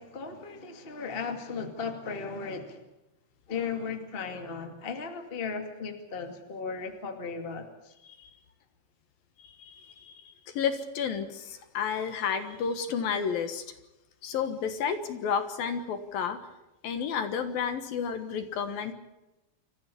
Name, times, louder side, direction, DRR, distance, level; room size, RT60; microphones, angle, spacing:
voice 1, 0.0-2.8 3.5-7.9, left 5 dB, 85° left, 5 dB, 0.5 m, -36 dB
voice 2, 9.4-13.6 14.2-16.4 16.8-18.9, left 7 dB, 65° left, 9 dB, 2.6 m, -31 dB
26.0 x 14.5 x 8.4 m, 0.97 s
omnidirectional pair, 5.5 m